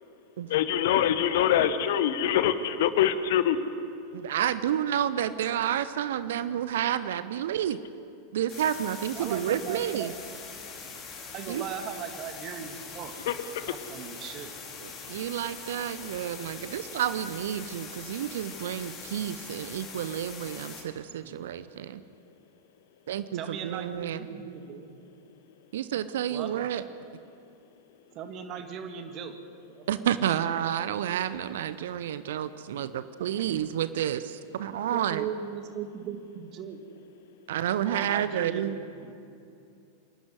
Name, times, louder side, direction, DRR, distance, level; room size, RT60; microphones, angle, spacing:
voice 1, 0.5-3.6 13.3-13.7, left 10 dB, 55° left, 12 dB, 1.2 m, -24 dB
voice 2, 4.1-7.8 8.3-10.1 11.5-11.6 14.8-22.0 23.1-24.2 25.7-26.8 29.9-35.3 37.5-38.7, right 10 dB, 60° right, 14 dB, 0.7 m, -30 dB
sound 1, 8.5-20.8, left 5 dB, 30° left, 4.4 m, -43 dB
voice 3, 9.2-10.1 11.3-13.2 13.6-14.5 21.2-21.4 23.3-24.9 26.3-26.5 28.1-29.4 29.7-30.4 33.3-33.9 34.7-36.8 37.9-39.1, right 7 dB, 35° right, 6 dB, 2.1 m, -39 dB
26.5 x 11.5 x 9.6 m, 2.6 s
figure-of-eight pair, 90°, 0 cm